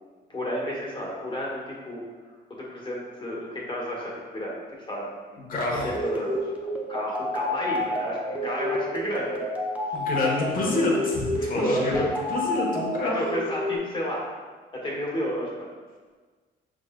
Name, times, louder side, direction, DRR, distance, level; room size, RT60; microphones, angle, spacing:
voice 1, 0.3-2.1 2.6-5.4 5.8-9.7 11.4-12.1 13.0-14.3 14.7-15.7, equal, 25° left, -4 dB, 1.4 m, -31 dB
voice 2, 5.5-5.9 9.9-13.1, left 2 dB, 45° left, -3 dB, 1.1 m, -27 dB
sound 1, 5.9-13.8, left 1 dB, 5° right, 0.6 m, -30 dB
5.9 x 3.7 x 2.2 m, 1.5 s
cardioid pair, 90°, 20 cm